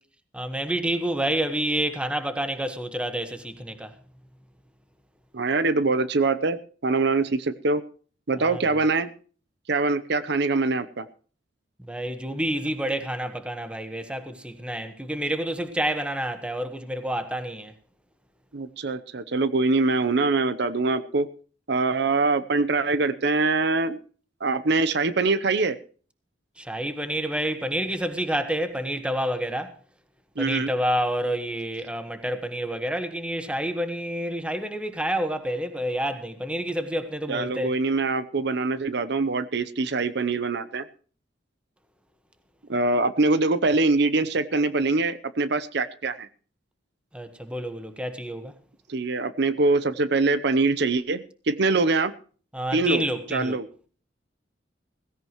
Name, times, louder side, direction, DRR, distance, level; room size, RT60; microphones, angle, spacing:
voice 1, 0.3-3.9 8.4-8.6 11.8-17.7 26.6-29.7 30.4-37.7 47.1-48.5 52.5-53.6, right 1 dB, 5° right, 1.3 m, -28 dB
voice 2, 5.3-7.8 8.3-9.1 9.7-11.1 18.5-21.3 21.7-24.0 24.4-25.8 30.4-30.7 37.3-40.8 42.7-46.3 48.9-52.1 52.7-53.0 53.3-53.7, right 3 dB, 65° right, 0.8 m, -23 dB
17.0 x 16.0 x 3.1 m
head